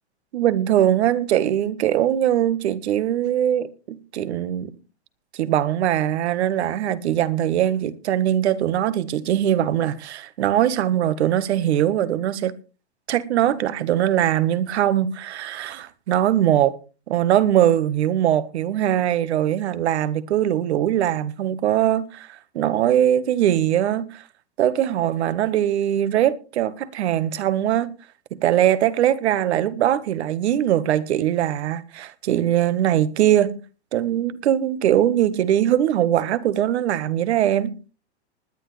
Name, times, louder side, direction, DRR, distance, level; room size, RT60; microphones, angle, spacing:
voice 1, 0.3-4.7 5.3-12.5 13.1-16.8 17.1-24.2 24.6-27.9 28.4-33.6 33.9-37.7, right 11 dB, 70° right, 1.6 m, -21 dB
20.0 x 10.5 x 3.3 m
hypercardioid pair, 125°, 34 cm